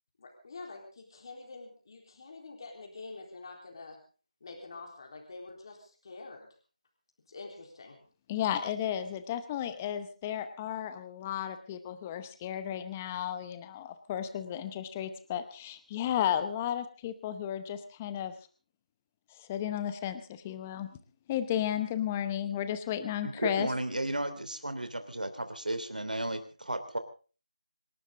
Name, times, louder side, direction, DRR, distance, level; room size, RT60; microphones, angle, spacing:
voice 1, 0.2-4.0 4.4-6.5 7.3-8.0, left 3 dB, 35° left, 1 dB, 3.8 m, -46 dB
voice 2, 8.3-18.3 19.4-20.9 21.3-23.7, left 10 dB, 15° left, 11 dB, 0.8 m, -33 dB
voice 3, 23.2-27.0, right 1 dB, 90° right, 9 dB, 3.0 m, -34 dB
26.5 x 12.5 x 3.8 m, 0.37 s
figure-of-eight pair, 170°, 4 cm